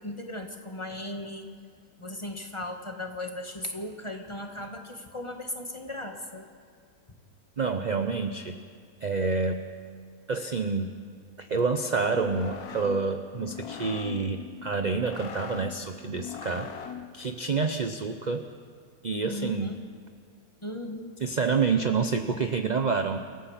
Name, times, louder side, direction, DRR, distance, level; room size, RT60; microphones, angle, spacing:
voice 1, 0.0-1.5 2.0-6.5 19.1-19.8 20.6-21.2, left 1 dB, 15° left, 3 dB, 1.8 m, -37 dB
voice 2, 7.6-8.6 9.0-9.6 10.3-10.9 11.4-16.7 17.1-18.5 19.0-19.7 21.2-23.2, right 4 dB, 45° right, 7 dB, 0.6 m, -28 dB
sound 1, 12.0-17.3, left 8 dB, 65° left, 1.5 m, -41 dB
29.0 x 14.5 x 7.4 m, 2.1 s
omnidirectional pair, 1.8 m